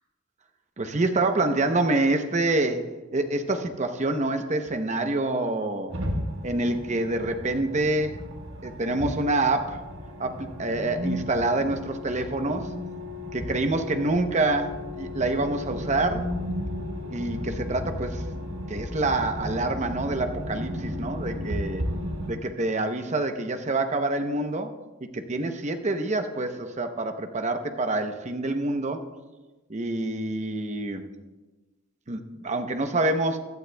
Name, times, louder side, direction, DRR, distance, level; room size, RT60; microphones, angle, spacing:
voice 1, 0.8-5.9 6.4-8.2 8.6-9.9 10.2-12.7 13.3-16.3 17.1-21.9 22.2-24.7 25.0-29.0 29.7-31.1 32.1-33.4, right 2 dB, 35° right, 7 dB, 0.8 m, -27 dB
sound 1, 5.9-22.3, left 1 dB, 80° right, 1.4 m, -34 dB
16.0 x 11.5 x 2.3 m, 1.2 s
head